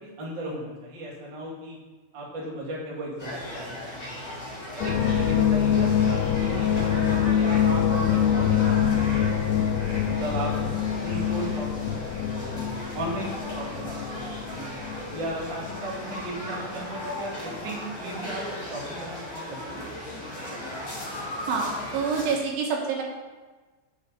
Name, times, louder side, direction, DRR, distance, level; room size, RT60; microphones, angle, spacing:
voice 1, 0.0-1.8 2.1-4.2 4.6-10.7 11.0-14.8 15.1-19.8, right 1 dB, 40° right, -4 dB, 1.8 m, -36 dB
sound 1, 3.2-22.4, equal, 30° left, 3.5 m, -37 dB
sound 2, 4.8-16.9 17.2-17.6, left 9 dB, 85° left, 3.0 m, -25 dB
voice 2, 21.5-23.0, right 5 dB, 80° right, -1 dB, 3.8 m, -27 dB
7.6 x 6.3 x 7.0 m, 1.3 s
omnidirectional pair, 5.5 m